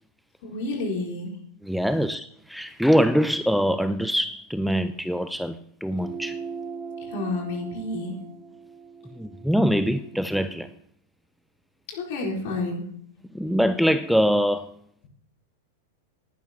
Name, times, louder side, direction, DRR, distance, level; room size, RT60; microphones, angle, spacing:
voice 1, 0.4-1.3 7.0-8.1 11.9-12.8, left 2 dB, 55° left, 4.3 m, -30 dB
voice 2, 1.6-6.4 9.1-10.7 13.3-14.7, equal, ahead, 0.5 m, -23 dB
sound 1, 5.9-10.7, right 5 dB, 25° right, 1.2 m, -40 dB
19.0 x 11.5 x 2.9 m
figure-of-eight pair, 95°, 0 cm